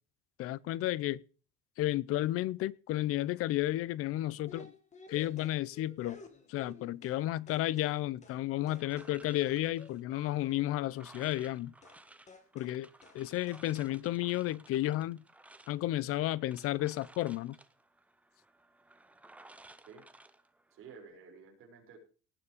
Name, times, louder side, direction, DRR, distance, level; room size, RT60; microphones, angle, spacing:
voice 1, 0.4-1.2 1.8-4.7 5.1-6.2 6.5-11.7 12.5-12.9 13.1-15.2 15.7-17.6, left 15 dB, 50° left, 0.6 m, -32 dB
sound 1, 4.5-7.2 7.5-8.4 8.7-10.8 11.8-12.0 12.3-12.8 13.0-13.2 13.5-14.0, left 4 dB, 25° left, 2.2 m, -53 dB
sound 2, 8.7-21.1, right 2 dB, 5° right, 0.7 m, -58 dB
voice 2, 20.7-22.0, right 5 dB, 45° right, 5.4 m, -52 dB
18.5 x 7.2 x 5.1 m
cardioid pair, 170°, 30 cm